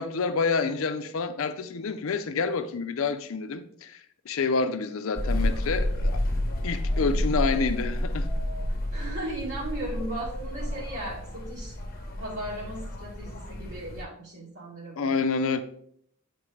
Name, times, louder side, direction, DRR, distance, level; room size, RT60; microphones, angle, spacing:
voice 1, 0.0-4.0 4.3-6.2 6.6-8.3 15.0-15.6, left 4 dB, 70° left, 0.5 m, -28 dB
sound 1, 5.1-14.0, left 1 dB, 45° left, 0.8 m, -30 dB
voice 2, 6.9-7.2 8.9-11.8 12.2-15.2, right 1 dB, 65° right, 1.8 m, -37 dB
9.0 x 4.3 x 3.2 m
head